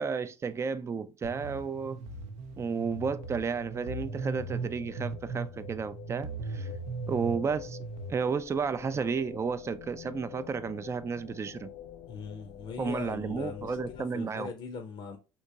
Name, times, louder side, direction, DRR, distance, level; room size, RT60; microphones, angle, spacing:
voice 1, 0.0-2.0 2.6-6.7 7.1-7.8 8.1-11.7 12.8-14.5, right 5 dB, 25° right, 0.4 m, -32 dB
sound 1, 1.2-8.1, right 3 dB, 70° right, 0.6 m, -39 dB
sound 2, 3.0-14.0, left 10 dB, 90° left, 0.5 m, -47 dB
voice 2, 12.1-15.2, left 5 dB, 50° left, 0.6 m, -40 dB
3.6 x 2.8 x 2.8 m
supercardioid pair, 100°, 12 cm